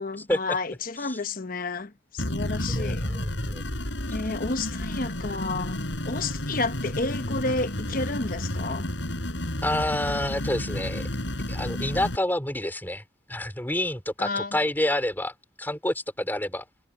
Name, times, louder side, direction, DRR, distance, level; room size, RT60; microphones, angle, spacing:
voice 1, 0.0-3.0 4.1-8.9 14.2-14.6, left 3 dB, 50° left, 1.0 m, -31 dB
sound 1, 2.2-12.2, left 1 dB, 85° left, 5.8 m, -31 dB
voice 2, 2.7-3.6 9.6-11.1 11.5-13.0 13.3-16.6, left 1 dB, 10° left, 4.3 m, -28 dB
head